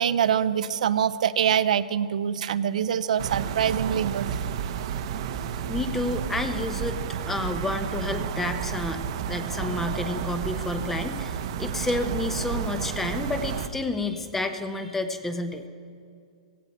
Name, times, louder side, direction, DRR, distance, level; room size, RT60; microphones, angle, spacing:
voice 1, 0.0-4.4, right 9 dB, 70° right, 14 dB, 0.5 m, -24 dB
sound 1, 3.2-13.7, right 8 dB, 45° right, 0.8 m, -31 dB
voice 2, 5.7-7.0 7.3-15.6, left 2 dB, 5° left, 8 dB, 0.8 m, -30 dB
17.0 x 17.0 x 4.3 m, 2.3 s
hypercardioid pair, 155°, 4 cm